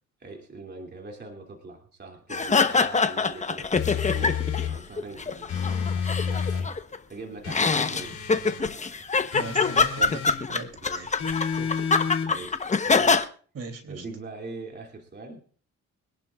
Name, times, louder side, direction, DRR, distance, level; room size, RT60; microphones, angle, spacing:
voice 1, 0.2-4.4 4.7-6.7 7.1-8.2 10.8-13.2 13.9-15.4, right 3 dB, 35° right, 2 dB, 2.8 m, -42 dB
sound 1, 2.3-4.7 5.0-7.0 7.5-13.2, left 4 dB, 25° left, 1.0 m, -24 dB
sound 2, 3.7-4.8 5.5-6.7 7.4-8.7 9.3-10.4 11.2-12.3, left 7 dB, 70° left, 3.8 m, -30 dB
voice 2, 9.3-11.1 13.5-14.0, right 4 dB, 50° right, 7 dB, 3.2 m, -38 dB
24.5 x 11.0 x 2.5 m, 0.43 s
cardioid pair, 90°, 30 cm